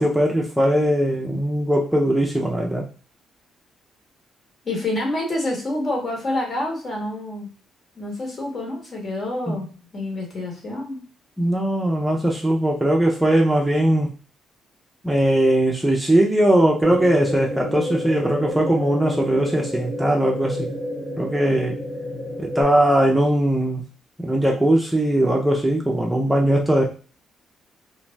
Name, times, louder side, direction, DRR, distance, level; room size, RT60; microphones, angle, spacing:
voice 1, 0.0-2.9 9.5-9.6 11.4-14.1 15.0-20.7 21.2-21.8 22.4-23.8 24.2-26.8, right 1 dB, 5° right, -1 dB, 0.5 m, -20 dB
voice 2, 4.6-7.5 8.0-9.7 9.9-11.0, left 1 dB, 40° left, 0 dB, 1.3 m, -27 dB
sound 1, 16.8-22.6, equal, 70° left, 1.4 m, -29 dB
2.5 x 2.1 x 3.1 m, 0.39 s
cardioid pair, 90°, 0 cm